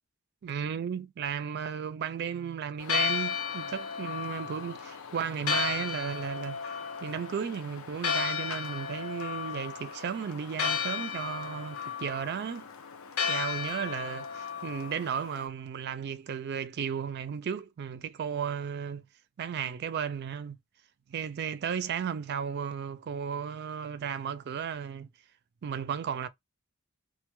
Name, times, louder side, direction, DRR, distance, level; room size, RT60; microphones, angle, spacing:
voice 1, 0.4-6.6 7.0-12.7 13.3-19.0 19.4-20.6 21.1-25.1 25.6-26.3, right 7 dB, 50° right, 0.3 m, -34 dB
Church bell, 2.8-15.5, left 6 dB, 75° left, 0.5 m, -34 dB
2.1 x 2.1 x 2.9 m
head